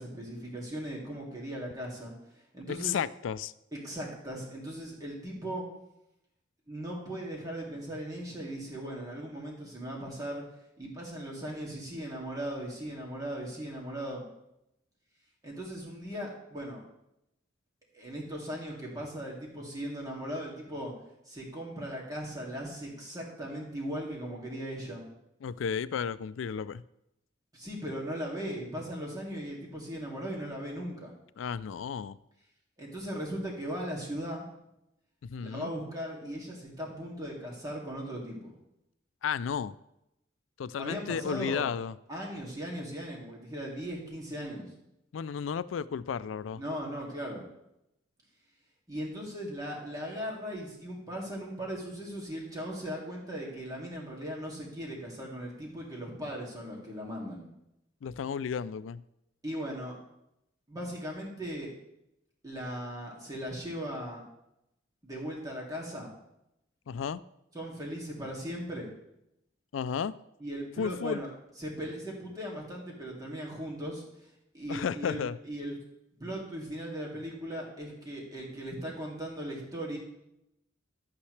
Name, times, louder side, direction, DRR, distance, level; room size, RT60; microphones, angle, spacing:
voice 1, 0.0-2.1 2.5-3.0 3.7-5.7 6.7-10.4 10.8-14.3 15.4-16.8 17.9-20.9 21.3-25.1 27.5-31.1 32.8-34.5 35.4-38.5 40.7-41.7 42.1-44.7 46.6-47.5 48.9-57.5 59.4-60.0 60.7-61.7 62.4-64.2 65.0-66.1 67.5-68.9 70.4-71.3 71.6-74.0 74.5-75.8 76.2-80.0, equal, 20° right, -3 dB, 2.4 m, -38 dB
voice 2, 2.7-3.5 25.4-26.8 31.4-32.2 35.2-35.7 39.2-39.8 40.6-41.9 45.1-46.6 58.0-59.0 66.9-67.2 69.7-70.1 70.8-71.2 74.7-75.4, left 7 dB, 90° left, 17 dB, 0.4 m, -33 dB
11.5 x 8.5 x 3.3 m, 0.84 s
head